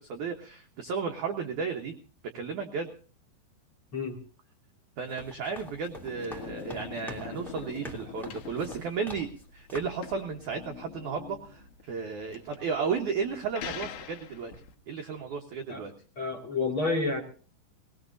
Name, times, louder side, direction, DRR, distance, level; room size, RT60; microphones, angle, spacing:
voice 1, 0.0-1.9 2.3-2.9 5.0-14.5 14.9-15.9, right 5 dB, 70° right, 4 dB, 1.9 m, -34 dB
sound 1, 5.0-9.4 9.7-10.1, right 1 dB, ahead, 1.4 m, -46 dB
sound 2, 5.5-14.7, left 8 dB, 75° left, 3.7 m, -44 dB
voice 2, 16.2-17.2, left 3 dB, 35° left, 4 dB, 2.3 m, -29 dB
20.5 x 19.0 x 2.6 m, 0.39 s
omnidirectional pair, 5.2 m